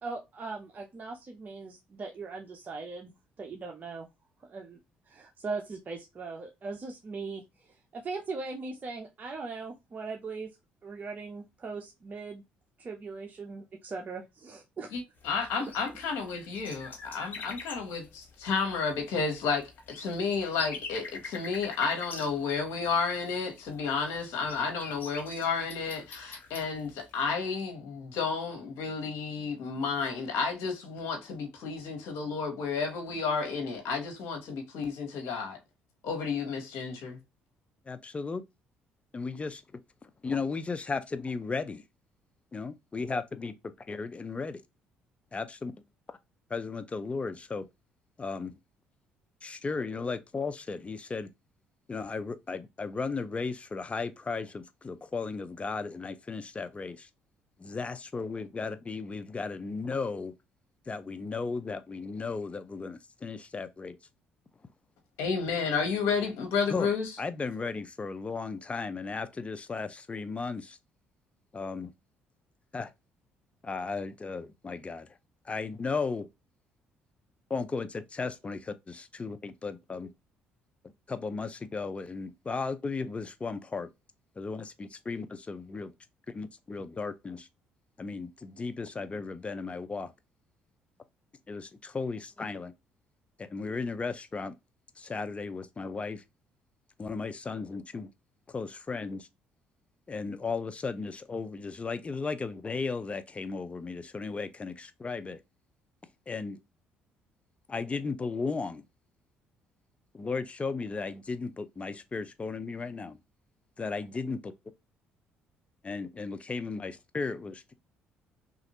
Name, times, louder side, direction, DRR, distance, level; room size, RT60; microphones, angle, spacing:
voice 1, 0.0-3.1 3.4-4.1 4.4-4.8 5.1-7.4 7.9-10.5 10.8-12.4 12.8-15.0, right 4 dB, 40° right, 0.6 m, -39 dB
voice 2, 14.9-16.9 17.1-35.6 36.0-37.2 65.2-67.1, left 5 dB, 75° left, 1.0 m, -31 dB
sound 1, 15.2-27.2, left 4 dB, 45° left, 1.1 m, -45 dB
voice 3, 37.9-38.4 39.1-39.6 40.2-41.8 42.5-43.5 43.9-44.6 45.3-45.7 46.5-47.7 48.2-48.5 49.4-51.3 51.9-57.1 57.6-60.3 60.9-64.0 66.7-66.9 67.2-70.8 71.5-71.9 72.7-72.9 73.6-75.1 75.5-76.3 77.5-80.1 81.1-83.9 84.4-85.9 86.3-87.5 88.0-90.1 91.5-92.7 93.4-94.5 95.0-96.2 97.0-98.1 98.5-99.3 100.1-105.4 106.3-106.6 107.7-108.8 110.1-113.2 113.8-114.5 115.8-117.7, left 4 dB, 25° left, 0.5 m, -35 dB
3.0 x 2.5 x 2.9 m
supercardioid pair, 65°, 4 cm